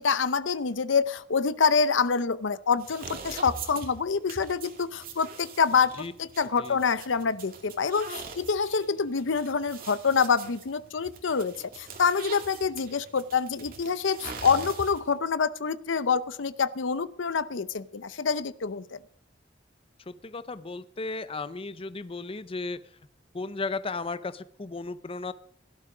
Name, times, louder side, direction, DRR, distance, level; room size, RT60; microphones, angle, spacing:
voice 1, 0.0-19.0, left 5 dB, 90° left, 16 dB, 0.7 m, -26 dB
sound 1, 2.8-15.2, right 4 dB, 50° right, 2.3 m, -43 dB
voice 2, 20.1-22.8 23.3-25.3, left 3 dB, 30° left, 14 dB, 0.6 m, -35 dB
16.5 x 12.0 x 5.0 m, 0.65 s
head